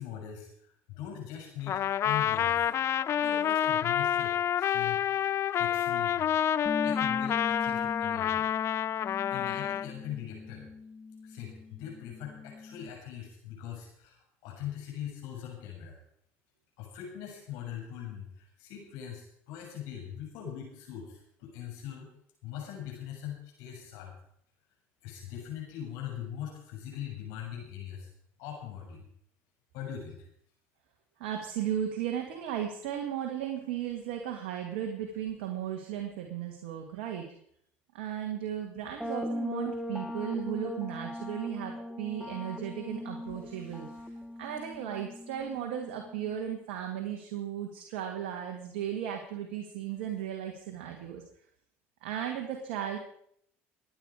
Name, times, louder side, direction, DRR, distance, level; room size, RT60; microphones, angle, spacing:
voice 1, 0.0-2.7 3.1-6.3 6.8-8.5 9.3-10.7 11.2-16.0 16.8-22.1 22.4-24.1 25.0-28.1 28.4-29.0 29.7-30.2, left 9 dB, 75° left, 0 dB, 6.6 m, -41 dB
Trumpet, 1.7-9.9, left 10 dB, 45° left, 0.4 m, -28 dB
Bass guitar, 6.7-12.9, left 4 dB, 25° left, 0.8 m, -39 dB
voice 2, 31.2-37.3 37.9-44.1 44.4-51.2 52.0-53.0, right 10 dB, 80° right, 3 dB, 1.9 m, -35 dB
sound 1, 39.0-46.6, left 1 dB, ahead, 1.6 m, -39 dB
22.0 x 9.2 x 4.9 m, 0.67 s
hypercardioid pair, 80°, 6 cm